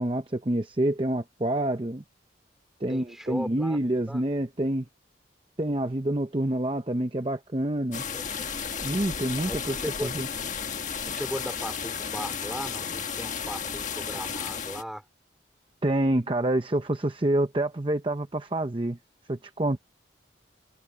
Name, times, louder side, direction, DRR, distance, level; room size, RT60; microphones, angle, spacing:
voice 1, 0.0-2.0 2.8-4.8 5.6-8.0 8.8-10.3 15.8-19.0 19.3-19.8, right 1 dB, 30° right, 0.8 m, -27 dB
voice 2, 2.9-3.8 4.1-4.2 8.0-8.5 9.5-10.1 11.1-15.0, equal, ahead, 3.3 m, -37 dB
sound 1, 7.9-14.8, left 6 dB, 40° left, 1.5 m, -33 dB
head